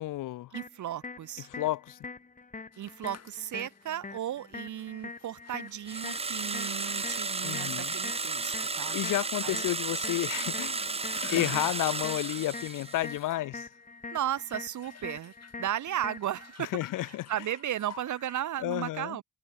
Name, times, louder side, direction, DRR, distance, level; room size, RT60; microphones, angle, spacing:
voice 1, 0.0-0.5 1.5-2.0 7.4-7.9 8.9-10.9 11.3-13.7 16.6-17.3 18.6-19.2, left 15 dB, 80° left, 2.0 m, -31 dB
sound 1, 0.5-16.5, left 4 dB, 25° left, 1.8 m, -45 dB
voice 2, 0.5-1.5 2.8-9.0 9.4-9.6 11.2-11.7 14.1-16.7 17.1-19.2, right 11 dB, 70° right, 2.7 m, -35 dB
sound 2, 2.7-9.3 10.4-12.8 13.0-13.5 14.5-18.4, left 7 dB, 55° left, 4.5 m, -50 dB
sound 3, 5.9-13.2, right 4 dB, 20° right, 0.9 m, -33 dB
supercardioid pair, 65°, 31 cm